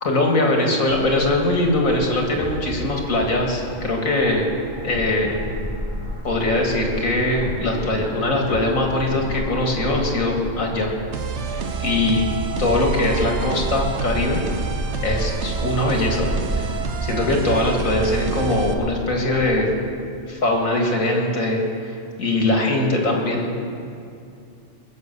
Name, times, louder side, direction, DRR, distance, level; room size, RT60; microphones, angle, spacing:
voice 1, 0.0-4.5 4.8-5.4 6.2-10.9 11.5-12.2 12.6-14.4 15.0-19.8 20.3-23.6, left 2 dB, 90° left, 0 dB, 2.5 m, -21 dB
sound 1, 0.9-19.5, left 1 dB, 15° right, 2.0 m, -32 dB
sound 2, 11.1-18.7, right 6 dB, 60° right, 1.2 m, -28 dB
21.0 x 8.1 x 6.9 m, 2.5 s
omnidirectional pair, 1.4 m